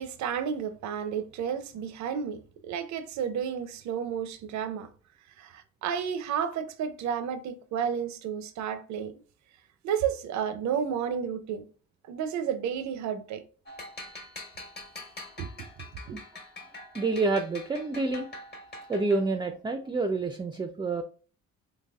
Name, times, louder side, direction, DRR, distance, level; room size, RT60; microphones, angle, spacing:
voice 1, 0.0-4.9 5.4-9.1 9.8-11.6 12.1-13.4 15.4-15.5 16.1-16.2, right 8 dB, 70° right, 0.5 m, -32 dB
sound 1, 13.7-19.4, left 2 dB, 35° left, 1.2 m, -45 dB
voice 2, 16.9-18.3 18.9-21.0, right 3 dB, 15° right, 0.4 m, -28 dB
4.0 x 3.0 x 2.3 m
cardioid pair, 90°, 30 cm